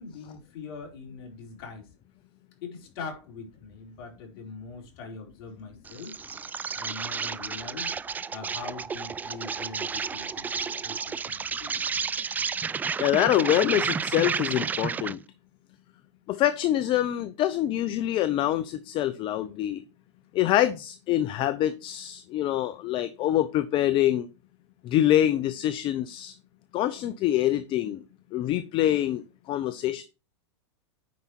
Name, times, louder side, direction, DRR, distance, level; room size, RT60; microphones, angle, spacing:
voice 1, 0.0-1.9 2.6-6.2 6.7-7.9 8.3-11.7, left 4 dB, 55° left, 4.5 m, -42 dB
Insect, 5.8-15.2, right 6 dB, 10° right, 0.3 m, -31 dB
voice 2, 13.0-15.2 16.3-19.8 20.3-24.3 24.8-26.3 26.7-28.0 28.3-30.0, left 12 dB, 35° left, 0.7 m, -25 dB
9.4 x 5.6 x 4.6 m
hypercardioid pair, 120°, 15 cm